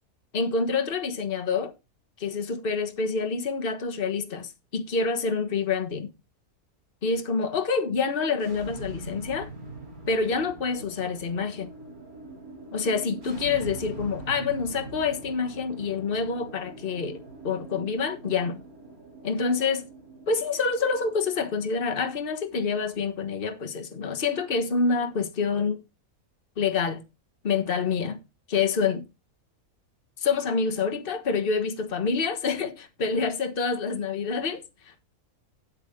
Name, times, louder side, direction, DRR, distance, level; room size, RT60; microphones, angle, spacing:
voice 1, 0.3-1.7 2.2-6.1 7.0-9.5 10.1-11.7 12.7-18.6 19.2-19.8 20.3-25.8 26.6-27.0 27.4-28.2 28.5-29.0 30.2-34.6, left 5 dB, 40° left, 1.4 m, -27 dB
sound 1, 8.3-23.3, right 2 dB, 75° right, 4.1 m, -43 dB
8.9 x 8.3 x 3.6 m
omnidirectional pair, 1.5 m